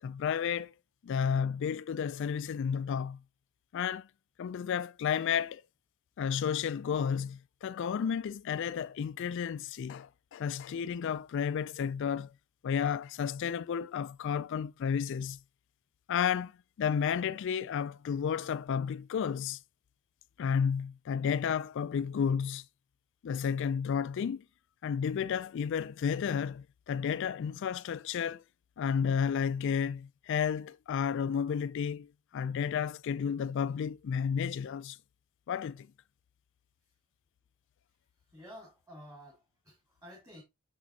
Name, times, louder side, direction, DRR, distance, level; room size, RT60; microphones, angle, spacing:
voice 1, 0.0-0.7 1.0-3.2 3.7-4.1 4.4-5.6 6.2-12.3 12.6-15.4 16.1-16.5 16.8-19.6 20.4-22.6 23.2-24.4 24.8-28.4 28.8-35.0 35.5-35.9, left 7 dB, 55° left, 0.3 m, -32 dB
voice 2, 38.3-40.4, equal, 15° right, 2.5 m, -51 dB
6.7 x 6.3 x 2.8 m
head